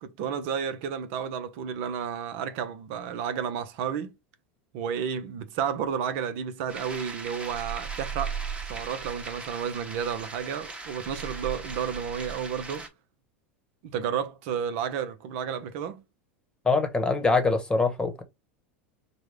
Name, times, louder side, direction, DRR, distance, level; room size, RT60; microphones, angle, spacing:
voice 1, 0.0-4.1 4.7-12.9 13.8-16.0, right 7 dB, 60° right, 0.7 m, -32 dB
sound 1, 6.7-12.9, right 5 dB, 15° right, 1.1 m, -37 dB
voice 2, 16.6-18.2, left 3 dB, 10° left, 1.1 m, -24 dB
5.1 x 2.2 x 3.3 m
hypercardioid pair, 105°, 7 cm